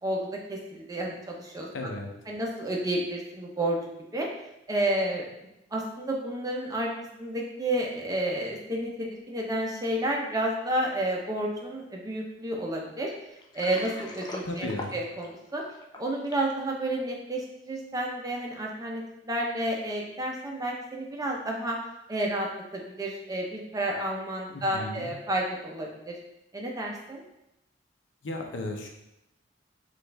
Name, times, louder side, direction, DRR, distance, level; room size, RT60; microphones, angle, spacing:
voice 1, 0.0-1.7 2.3-3.8 4.1-4.3 4.7-5.3 5.7-6.9 7.2-13.1 13.5-15.6 15.9-21.8 22.1-26.1 26.5-27.2, right 1 dB, 20° right, -1 dB, 0.7 m, -31 dB
voice 2, 1.7-2.1 14.5-14.9 24.5-25.1 28.2-28.9, left 1 dB, 90° left, 2 dB, 0.7 m, -35 dB
Water, 13.4-16.5, left 2 dB, 25° left, 0.5 m, -41 dB
6.2 x 2.5 x 3.3 m, 0.86 s
head